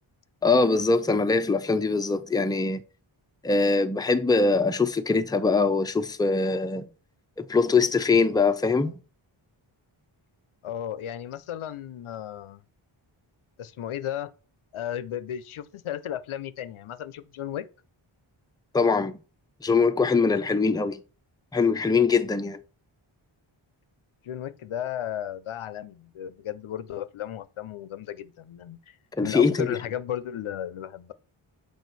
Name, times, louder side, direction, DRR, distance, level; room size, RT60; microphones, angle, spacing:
voice 1, 0.4-2.8 3.4-6.9 7.4-8.9 18.7-19.2 19.6-21.0 21.5-22.6 29.2-29.8, left 4 dB, 10° left, 0.5 m, -22 dB
voice 2, 10.6-12.6 13.6-14.3 14.7-17.7 24.2-28.9 29.2-31.1, left 10 dB, 75° left, 0.6 m, -34 dB
6.3 x 4.9 x 4.0 m
cardioid pair, 60°, 50 cm